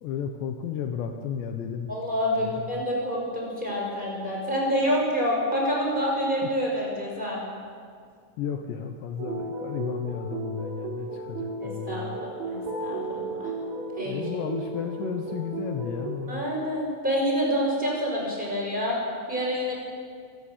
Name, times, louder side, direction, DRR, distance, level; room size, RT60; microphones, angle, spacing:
voice 1, 0.0-1.9 2.4-2.7 8.4-12.2 14.0-16.4, left 8 dB, 75° left, 5 dB, 3.1 m, -33 dB
voice 2, 1.9-7.4 11.6-13.5 14.0-14.1 16.3-19.0 19.3-19.7, equal, 10° right, -3 dB, 5.7 m, -27 dB
sound 1, 9.2-16.2, right 2 dB, 65° right, 5.8 m, -34 dB
25.0 x 18.0 x 7.4 m, 2.1 s
omnidirectional pair, 5.5 m